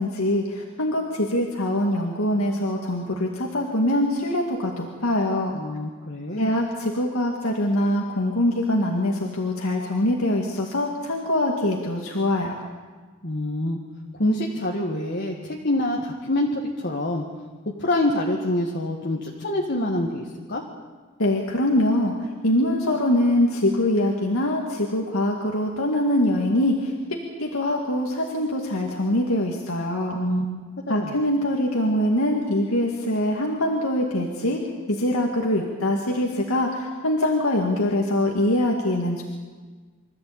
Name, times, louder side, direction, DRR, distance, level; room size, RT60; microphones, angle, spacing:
voice 1, 0.0-5.6 6.4-12.6 21.2-22.1 22.4-26.9 27.4-30.2 30.9-34.6 34.9-39.2, left 1 dB, 75° left, 0 dB, 2.2 m, -23 dB
voice 2, 5.5-6.5 13.2-13.8 14.2-17.2 17.8-20.6 30.1-31.2, left 1 dB, 50° left, -1 dB, 1.7 m, -26 dB
25.0 x 14.0 x 8.8 m, 1.4 s
head